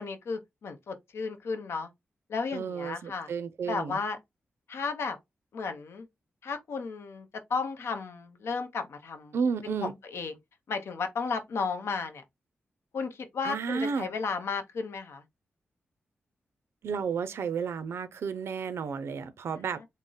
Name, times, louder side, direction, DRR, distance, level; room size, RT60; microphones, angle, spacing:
voice 1, 0.0-1.9 2.3-3.3 3.6-4.2 4.7-5.2 5.5-6.1 6.4-9.3 9.8-10.3 10.7-12.2 12.9-15.2, left 4 dB, 80° left, 0.7 m, -34 dB
voice 2, 2.5-4.0 9.3-9.9 13.4-14.1 16.8-19.9, right 6 dB, 75° right, 0.4 m, -32 dB
3.6 x 2.0 x 3.9 m
wide cardioid pair, 100°, 4 cm